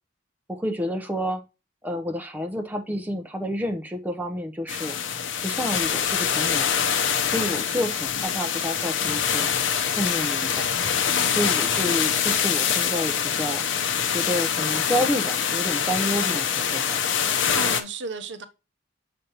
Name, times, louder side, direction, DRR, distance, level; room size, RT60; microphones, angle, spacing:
voice 1, 0.5-1.4 1.8-5.0 5.4-6.7 7.3-9.5 9.9-10.7 11.3-13.6 14.1-17.0, equal, 10° right, 0.7 m, -29 dB
sound 1, 4.7-17.8, left 8 dB, 80° left, 0.7 m, -24 dB
voice 2, 11.1-11.4 17.5-18.5, right 4 dB, 65° right, 0.7 m, -34 dB
6.6 x 5.2 x 2.9 m
head